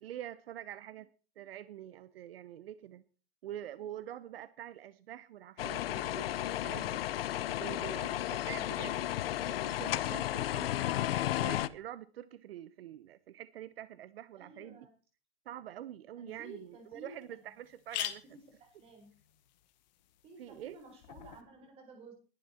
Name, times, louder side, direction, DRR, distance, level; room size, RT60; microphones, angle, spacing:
voice 1, 0.0-1.1 1.4-3.0 3.4-7.0 7.6-9.0 9.4-10.7 11.4-14.8 15.4-18.2 20.4-20.8, right 12 dB, 70° right, 15 dB, 1.0 m, -46 dB
sound 1, 5.6-11.7, left 13 dB, 65° left, 0.9 m, -33 dB
voice 2, 14.4-14.9 16.2-17.5 18.3-19.1 20.2-22.1, right 3 dB, 20° right, 5 dB, 4.1 m, -53 dB
sound 2, 16.3-16.4 16.9-17.0 17.2-17.3 17.6-21.4, left 13 dB, 45° left, 1.7 m, -44 dB
20.5 x 11.0 x 4.4 m, 0.37 s
supercardioid pair, 170°, 31 cm